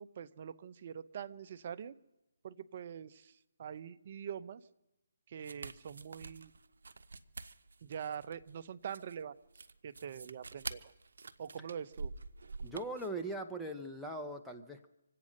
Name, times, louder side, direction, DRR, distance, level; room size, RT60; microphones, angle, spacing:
voice 1, 0.0-2.0 2.4-4.6 5.3-6.5 7.8-9.4 9.8-10.9 11.4-12.1, right 8 dB, 40° right, 12 dB, 0.6 m, -44 dB
sound 1, 5.4-13.2, right 3 dB, 75° right, 0.8 m, -47 dB
voice 2, 12.6-14.9, right 1 dB, ahead, 1 dB, 0.7 m, -40 dB
25.5 x 8.6 x 6.4 m, 0.96 s
hypercardioid pair, 160°, 0 cm